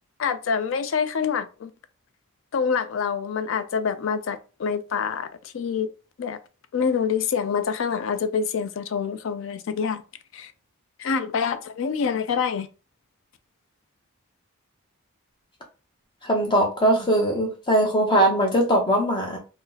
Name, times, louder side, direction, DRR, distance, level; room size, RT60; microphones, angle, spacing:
voice 1, 0.2-1.7 2.5-5.9 6.2-6.4 6.7-10.0 10.3-10.5 11.0-12.7, left 6 dB, 60° left, 0.3 m, -26 dB
voice 2, 16.2-19.4, right 1 dB, 20° left, 0.7 m, -21 dB
2.7 x 2.0 x 3.7 m
head